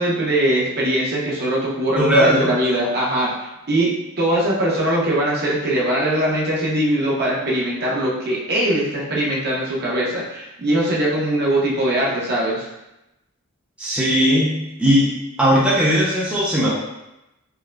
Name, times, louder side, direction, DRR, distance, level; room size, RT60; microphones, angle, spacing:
voice 1, 0.0-12.7, right 1 dB, 50° right, -4 dB, 0.7 m, -21 dB
voice 2, 2.0-2.5 13.8-15.1 15.4-16.8, equal, 5° right, -8 dB, 0.5 m, -17 dB
4.6 x 2.0 x 2.2 m, 0.93 s
head